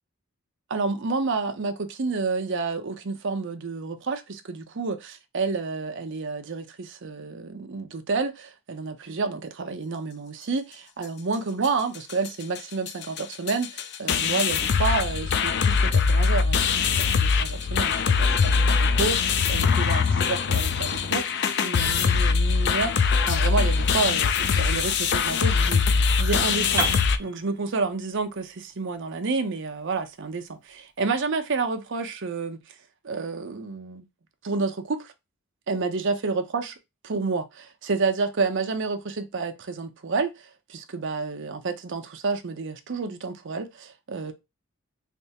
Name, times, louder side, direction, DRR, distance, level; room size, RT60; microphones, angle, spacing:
voice 1, 0.7-32.6 33.0-34.1 34.4-35.1 35.7-36.7 37.0-44.3, right 4 dB, 55° right, 0.6 m, -30 dB
sound 1, 11.6-11.7 11.9-12.3 12.6-12.7 12.9-27.2, left 5 dB, 50° left, 0.4 m, -22 dB
Piano, 26.8-30.7, right 1 dB, 15° right, 1.4 m, -33 dB
3.4 x 3.2 x 2.8 m
head